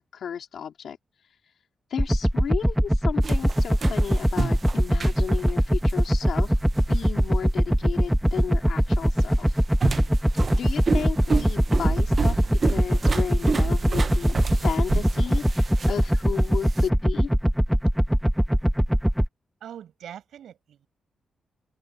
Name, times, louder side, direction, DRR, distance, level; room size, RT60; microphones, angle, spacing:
voice 1, 0.0-1.6 1.9-6.6 6.9-9.6 10.5-17.3, left 8 dB, 65° left, 3.8 m, -34 dB
sound 1, 2.0-19.3, equal, ahead, 1.1 m, -21 dB
sound 2, 3.2-16.9, right 5 dB, 35° right, 0.6 m, -32 dB
voice 2, 19.6-20.9, right 10 dB, 80° right, 7.8 m, -42 dB
wide cardioid pair, 160°, 0 cm